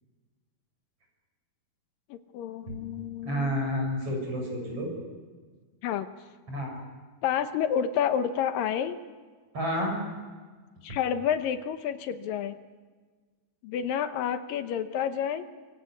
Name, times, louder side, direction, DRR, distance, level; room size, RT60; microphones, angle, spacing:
voice 1, 2.1-3.6 5.8-6.1 7.2-9.0 10.8-12.6 13.6-15.4, left 8 dB, 80° left, 9 dB, 2.7 m, -29 dB
voice 2, 3.2-4.9 6.5-6.7 9.5-9.9, equal, 40° right, 1 dB, 8.1 m, -30 dB
25.0 x 24.5 x 8.4 m, 1.4 s
omnidirectional pair, 4.1 m